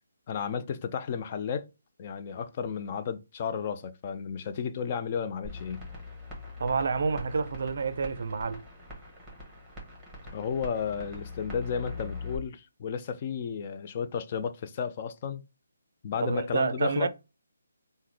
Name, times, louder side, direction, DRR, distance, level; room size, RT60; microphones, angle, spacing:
voice 1, 0.3-1.7 2.0-5.9 10.3-15.4 16.0-17.1, left 7 dB, 35° left, 0.3 m, -33 dB
sound 1, 5.4-12.4, left 3 dB, 5° right, 1.3 m, -42 dB
voice 2, 6.6-8.6 16.2-17.1, right 5 dB, 55° right, 0.4 m, -28 dB
3.6 x 2.1 x 3.1 m
figure-of-eight pair, 155°, 0 cm